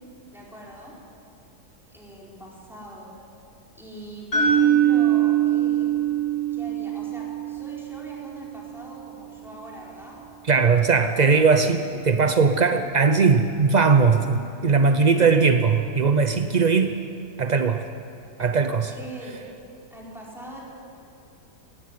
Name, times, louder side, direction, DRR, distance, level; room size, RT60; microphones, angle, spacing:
voice 1, 0.3-1.0 1.9-3.2 3.7-6.0 6.5-10.2 10.7-11.3 12.4-12.5 14.2-14.4 15.0-15.5 18.6-19.5 19.9-20.6, right 1 dB, ahead, -5 dB, 5.0 m, -42 dB
sound 1, 4.3-8.4, right 9 dB, 75° left, 5.1 m, -22 dB
voice 2, 10.4-17.0 17.4-17.8 18.4-18.9, right 5 dB, 55° right, 8 dB, 0.4 m, -19 dB
18.0 x 16.0 x 9.6 m, 2.7 s
omnidirectional pair, 1.7 m